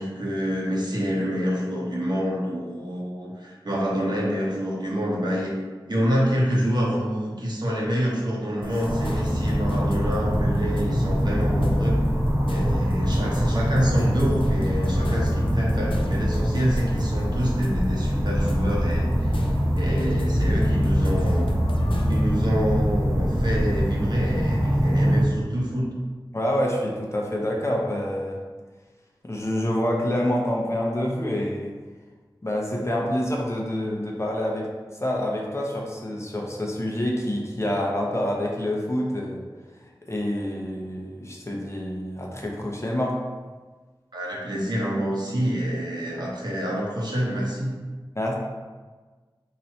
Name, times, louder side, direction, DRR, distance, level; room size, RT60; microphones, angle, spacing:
voice 1, 0.0-5.5 5.9-12.0 12.5-21.5 22.1-25.9 44.1-47.7, equal, 55° right, -4 dB, 1.0 m, -27 dB
sound 1, 8.6-22.3, left 2 dB, 80° left, 0.4 m, -40 dB
sound 2, 8.8-25.2, equal, 35° right, 0.8 m, -23 dB
voice 2, 26.3-28.4 29.2-31.7 32.4-39.5 40.1-43.2 48.1-48.4, left 1 dB, 30° left, -2 dB, 0.7 m, -27 dB
3.0 x 2.7 x 4.3 m, 1.4 s
wide cardioid pair, 40°, 9 cm